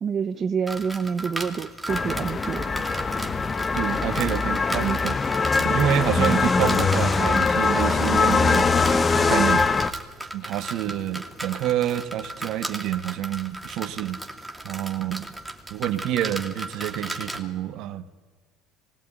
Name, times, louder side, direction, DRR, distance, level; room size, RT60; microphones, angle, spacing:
voice 1, 0.0-2.6 6.2-6.5, right 6 dB, 40° right, 9 dB, 0.8 m, -27 dB
sound 1, 0.7-17.4, right 1 dB, 5° right, 2.3 m, -36 dB
sound 2, 1.9-9.9, left 4 dB, 25° left, 1.0 m, -22 dB
voice 2, 3.7-5.2 5.6-9.7 10.3-14.2 14.6-15.3 15.7-18.1, right 11 dB, 60° right, 11 dB, 1.2 m, -28 dB
20.5 x 16.0 x 9.1 m, 1.4 s
hypercardioid pair, 70°, 0 cm